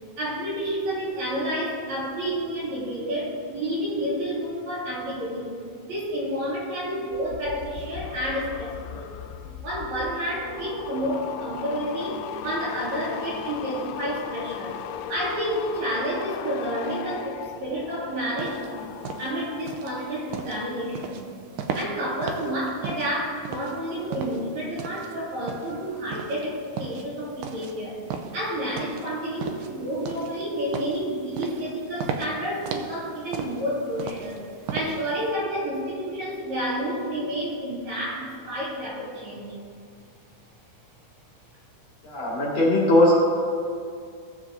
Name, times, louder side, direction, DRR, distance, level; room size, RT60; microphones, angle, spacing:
voice 1, 0.2-5.6 5.8-9.1 9.4-14.8 15.1-18.6 19.2-21.3 21.7-28.0 28.3-34.4 34.7-39.6, equal, 50° right, -7 dB, 3.4 m, -30 dB
sound 1, 7.1-19.8 20.1-20.5, left 9 dB, 85° left, 2.5 m, -38 dB
sound 2, 18.4-35.3, right 6 dB, 80° right, 1.9 m, -36 dB
voice 2, 42.0-43.1, left 1 dB, 45° left, -5 dB, 3.0 m, -19 dB
18.0 x 7.2 x 3.8 m, 2.3 s
omnidirectional pair, 4.5 m